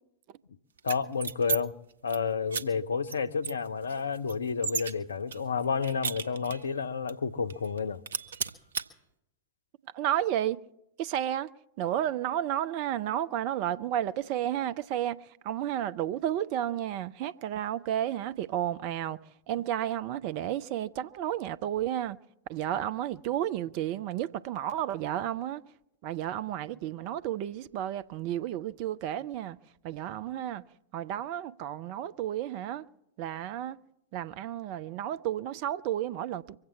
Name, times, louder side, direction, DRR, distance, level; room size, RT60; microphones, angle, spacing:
voice 1, 0.8-1.7 2.0-8.0, left 5 dB, 70° left, 0.6 m, -30 dB
sound 1, 0.8-1.6 1.9-2.2 2.5-2.6 3.1-3.2 3.4-4.9 5.3-6.7 7.1-7.2 7.5-7.8 8.1-8.9, right 5 dB, 70° right, 0.9 m, -33 dB
voice 2, 9.9-10.6 11.0-11.5 11.8-15.2 15.4-19.2 19.5-22.2 22.5-25.6 26.0-29.6 29.8-30.6 30.9-32.8 33.2-33.8 34.1-36.6, right 11 dB, 45° right, 0.5 m, -32 dB
24.0 x 8.0 x 7.2 m
figure-of-eight pair, 90°, 0 cm